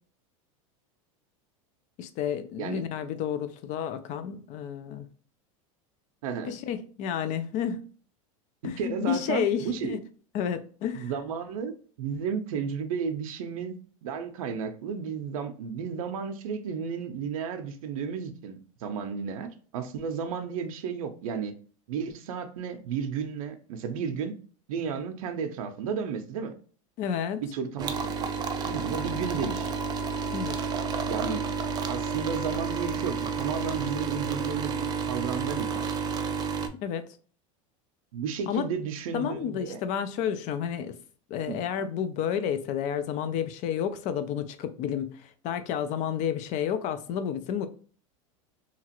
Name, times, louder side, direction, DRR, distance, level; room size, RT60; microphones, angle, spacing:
voice 1, 2.0-5.1 6.4-7.8 8.6-10.0 10.3-11.1 27.0-27.4 30.3-30.6 36.8-37.0 38.5-38.7 39.1-41.0 41.3-47.7, left 8 dB, 45° left, 0.4 m, -30 dB
voice 2, 6.2-6.5 8.6-10.0 11.0-21.5 21.9-24.3 24.7-26.5 27.4-29.7 31.1-31.4 31.9-35.9 38.1-39.8 41.5-41.6, right 6 dB, 85° right, 0.6 m, -33 dB
sound 1, 27.8-36.7, right 5 dB, 25° right, 0.3 m, -31 dB
2.9 x 2.4 x 2.8 m
supercardioid pair, 130°, 18 cm